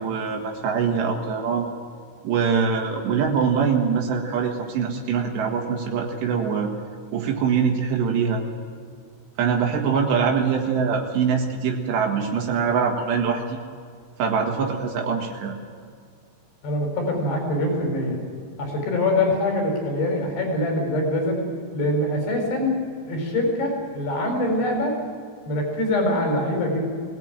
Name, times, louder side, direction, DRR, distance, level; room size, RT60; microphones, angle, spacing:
voice 1, 0.0-1.7 2.2-6.7 7.1-8.4 9.4-13.6 14.2-15.6, right 6 dB, 80° right, 1 dB, 4.1 m, -23 dB
voice 2, 16.6-18.2 18.6-21.4 21.7-22.7 23.1-24.9 25.5-26.8, left 1 dB, 75° left, 2 dB, 6.5 m, -24 dB
24.0 x 18.0 x 9.2 m, 2.1 s
omnidirectional pair, 4.9 m